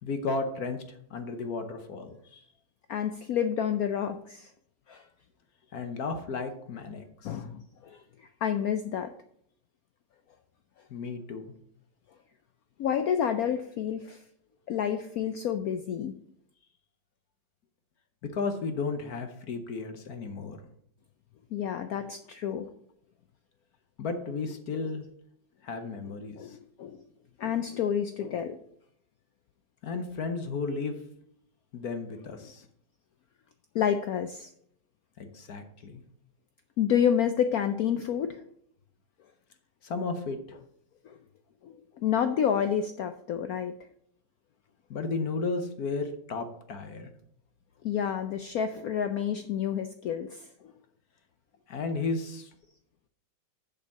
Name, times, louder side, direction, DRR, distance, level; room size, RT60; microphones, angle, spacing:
voice 1, 0.0-2.4 5.7-7.3 10.9-11.5 18.2-20.6 24.0-25.1 25.6-26.6 29.8-30.9 31.7-32.7 35.2-36.0 39.8-40.4 44.9-47.1 51.7-52.5, left 4 dB, 60° left, 7 dB, 1.2 m, -34 dB
voice 2, 2.9-4.5 4.9-5.1 7.2-9.1 12.8-14.2 14.7-16.1 21.5-22.7 26.4-27.0 27.4-28.6 32.4-32.5 33.7-34.5 36.8-38.4 41.0-41.2 41.6-43.7 47.8-50.5, left 8 dB, 80° left, 9 dB, 0.8 m, -29 dB
6.7 x 5.5 x 7.2 m, 0.69 s
omnidirectional pair, 2.1 m